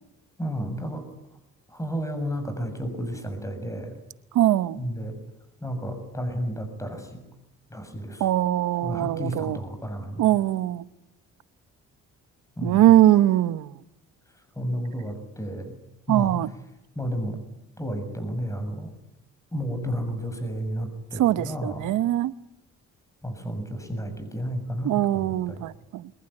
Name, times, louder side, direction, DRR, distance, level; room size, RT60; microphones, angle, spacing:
voice 1, 0.4-1.0 1.7-4.0 4.8-5.2 5.6-7.2 7.7-8.2 8.8-10.3 12.6-12.9 14.6-15.8 16.1-16.3 17.0-17.4 17.8-18.9 19.5-21.9 23.2-25.7, equal, 10° left, 7.2 m, -32 dB
voice 2, 4.3-4.8 8.2-9.6 10.2-10.8 12.6-13.7 16.1-16.5 21.2-22.3 24.8-26.1, right 13 dB, 80° right, 1.0 m, -21 dB
24.0 x 21.5 x 10.0 m
cardioid pair, 90°, 30 cm